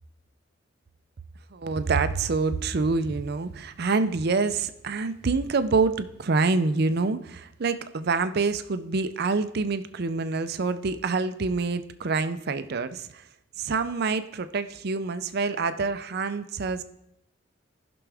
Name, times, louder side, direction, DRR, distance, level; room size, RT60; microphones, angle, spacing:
voice 1, 1.5-13.3 13.6-16.8, right 4 dB, 55° right, 11 dB, 0.5 m, -26 dB
14.5 x 6.0 x 3.4 m, 0.79 s
head